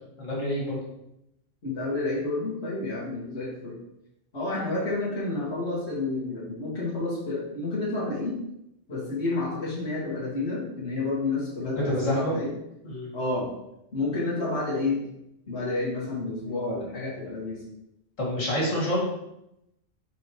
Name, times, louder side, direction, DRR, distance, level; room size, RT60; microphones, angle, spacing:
voice 1, 0.2-0.8 11.6-12.4 12.8-13.1 18.2-19.1, equal, 85° left, -5 dB, 2.5 m, -27 dB
voice 2, 1.6-3.8 4.3-8.4 8.9-12.5 13.1-13.5 13.9-15.0 15.5-17.6, left 2 dB, 60° left, -7 dB, 2.1 m, -30 dB
7.6 x 5.0 x 3.1 m, 0.83 s
omnidirectional pair, 1.3 m